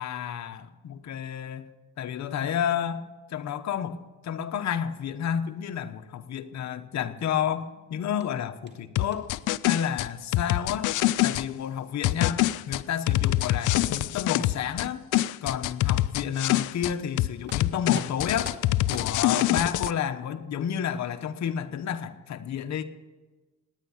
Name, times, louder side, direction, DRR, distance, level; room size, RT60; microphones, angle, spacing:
voice 1, 0.0-1.7 2.0-3.0 3.3-4.0 4.2-9.3 9.7-10.9 11.2-15.0 15.4-18.6 18.9-22.8, left 8 dB, 65° left, 8 dB, 1.1 m, -30 dB
sound 1, 8.2-9.5 12.5-14.7 17.0-17.1 17.5-20.1, right 4 dB, 35° right, 2.0 m, -48 dB
sound 2, 9.0-11.5 12.0-14.9 15.1-16.9 17.2-19.9, left 16 dB, 90° left, 0.5 m, -25 dB
18.5 x 9.6 x 7.3 m, 1.2 s
cardioid pair, 90°, 30 cm